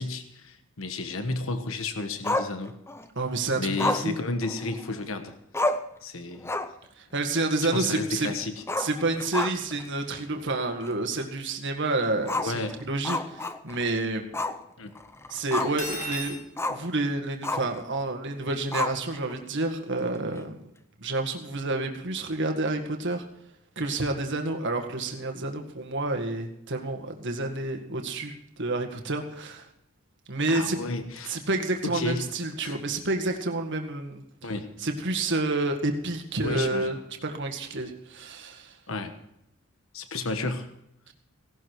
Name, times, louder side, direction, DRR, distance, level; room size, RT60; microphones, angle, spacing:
voice 1, 0.0-2.7 3.5-5.3 6.0-6.5 7.6-8.6 12.4-12.7 14.8-14.9 30.5-31.3 31.8-32.3 32.6-32.8 34.4-34.7 36.4-36.9 38.9-39.1 39.9-40.7, left 3 dB, 65° left, 8 dB, 1.3 m, -32 dB
Growling, 2.2-3.1 3.8-5.0 5.3-5.4 5.5-6.0 6.4-6.8 7.2-7.3 8.6-9.8 10.2-10.3 10.8-10.9 12.2-13.9 14.3-14.6 15.0-15.9 16.6-16.9 17.4-17.8 18.7-19.3, left 2 dB, 10° left, 0.6 m, -30 dB
voice 2, 3.2-4.2 7.0-8.3 8.8-14.3 15.3-16.4 16.7-20.7 21.0-23.2 23.8-29.7 30.3-30.8 31.3-34.5 34.8-37.0 37.2-38.7, right 2 dB, 55° right, 4 dB, 1.9 m, -29 dB
Cutlery silverware, 15.6-16.4, equal, 35° left, 2.6 m, -34 dB
17.5 x 12.0 x 4.8 m, 0.80 s
head